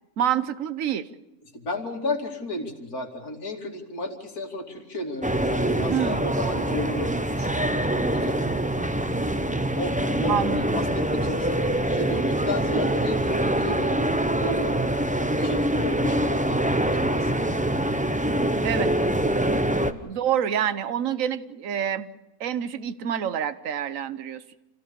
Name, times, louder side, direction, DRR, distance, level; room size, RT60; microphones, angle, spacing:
voice 1, 0.2-1.1 5.9-6.3 10.3-10.6 18.6-18.9 20.0-22.1 22.4-24.4, right 9 dB, 65° right, 13 dB, 1.3 m, -27 dB
voice 2, 1.4-8.5 9.7-15.0 15.4-17.7 19.6-20.5, left 2 dB, 80° left, 2 dB, 3.0 m, -34 dB
sound 1, 5.2-19.9, right 1 dB, 5° right, 0.7 m, -24 dB
27.5 x 16.5 x 6.9 m, 1.0 s
omnidirectional pair, 1.6 m